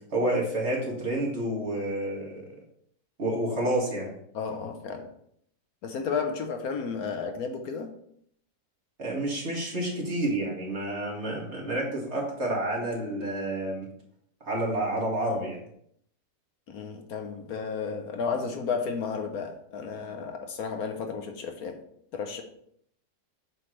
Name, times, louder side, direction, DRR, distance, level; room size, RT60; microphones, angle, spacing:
voice 1, 0.1-2.4 3.2-4.1 9.0-13.9 14.4-15.6, right 1 dB, 45° right, -3 dB, 2.2 m, -29 dB
voice 2, 4.3-5.1 5.8-7.9 16.7-21.8 22.1-22.4, left 5 dB, 70° left, 4 dB, 1.3 m, -32 dB
7.7 x 5.8 x 3.2 m, 0.69 s
omnidirectional pair, 1.7 m